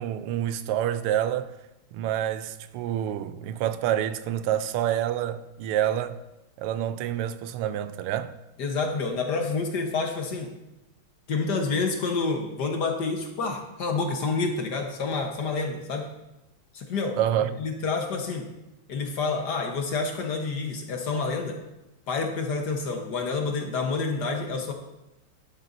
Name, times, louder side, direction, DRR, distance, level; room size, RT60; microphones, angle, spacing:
voice 1, 0.0-1.6 1.9-6.2 6.6-8.3 17.2-17.5, right 11 dB, 90° right, 1.5 m, -27 dB
voice 2, 8.6-10.5 11.3-16.1 16.7-17.2 17.6-18.5 18.9-21.6 22.1-24.7, left 4 dB, 55° left, 1.5 m, -28 dB
12.0 x 10.5 x 2.6 m
omnidirectional pair, 2.4 m